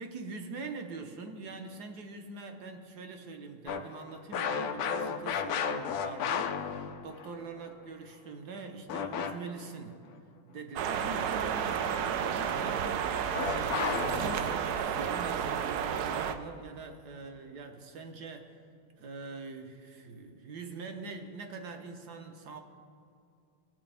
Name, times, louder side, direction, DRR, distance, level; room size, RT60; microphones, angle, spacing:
voice 1, 0.0-10.0 10.4-13.1 13.4-18.5 19.0-22.6, right 4 dB, 60° right, 5 dB, 1.3 m, -43 dB
sound 1, 3.7-7.3 8.9-9.6 13.3-14.5, left 7 dB, 85° left, 0.8 m, -33 dB
sound 2, 10.8-16.4, right 8 dB, 80° right, 0.8 m, -31 dB
18.5 x 8.4 x 3.4 m, 2.5 s
omnidirectional pair, 2.3 m